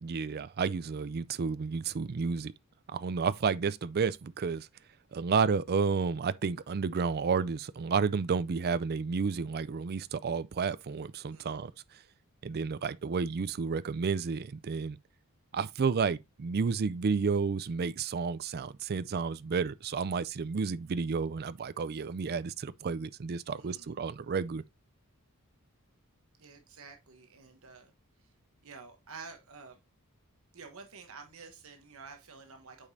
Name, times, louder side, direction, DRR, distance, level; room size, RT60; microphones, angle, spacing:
voice 1, 0.0-2.5 2.9-4.7 5.1-11.7 12.4-15.0 15.5-24.6, right 5 dB, 45° right, 0.4 m, -31 dB
voice 2, 11.3-11.6 23.6-23.9 26.4-27.9 28.6-29.8 30.5-32.9, right 4 dB, 65° right, 1.1 m, -50 dB
8.5 x 5.0 x 2.7 m
head